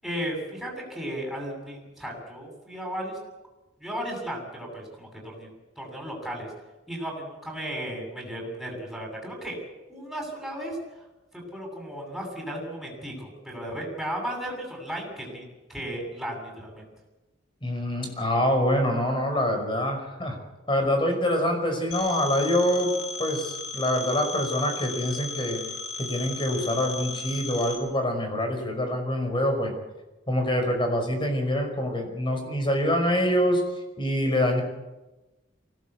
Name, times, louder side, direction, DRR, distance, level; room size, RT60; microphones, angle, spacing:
voice 1, 0.0-3.2 3.8-5.5 5.8-6.5 6.9-9.6 9.9-10.8 11.3-16.9, equal, ahead, -1 dB, 7.8 m, -35 dB
voice 2, 17.6-20.4 20.7-25.6 26.0-29.7 30.3-33.6 34.0-34.6, left 1 dB, 25° left, 4 dB, 5.5 m, -25 dB
Telephone, 21.9-27.7, left 3 dB, 70° left, 4.1 m, -36 dB
24.0 x 18.0 x 8.4 m, 1.1 s
head